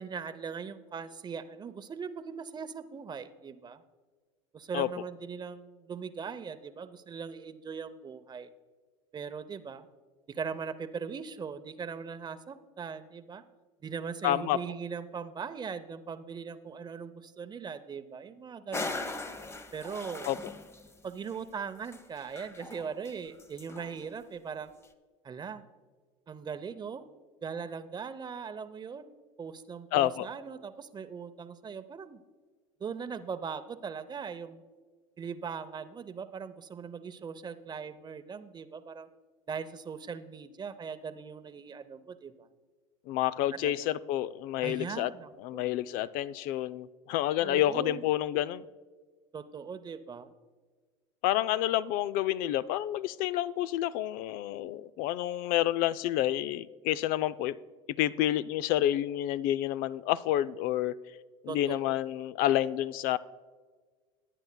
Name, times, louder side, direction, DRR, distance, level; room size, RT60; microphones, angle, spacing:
voice 1, 0.0-3.8 4.5-8.5 9.1-9.9 10.3-13.4 13.8-19.2 19.7-20.3 21.0-24.7 25.2-25.6 26.3-27.0 27.4-29.1 29.4-32.2 32.8-34.6 35.2-39.1 39.5-42.5 43.5-44.0 44.6-45.7 47.4-48.0 49.3-50.3 61.5-62.0, right 6 dB, 25° right, 0.6 m, -40 dB
voice 2, 14.2-14.6 20.3-20.4 29.9-30.3 43.1-45.1 45.4-48.6 51.2-57.6 58.0-60.9 61.4-63.2, left 13 dB, 60° left, 0.4 m, -29 dB
sound 1, 18.7-20.9 21.3-21.4 21.9-23.1 23.4-24.0, left 2 dB, 15° left, 0.8 m, -39 dB
18.5 x 9.0 x 2.2 m
hypercardioid pair, 90°, 17 cm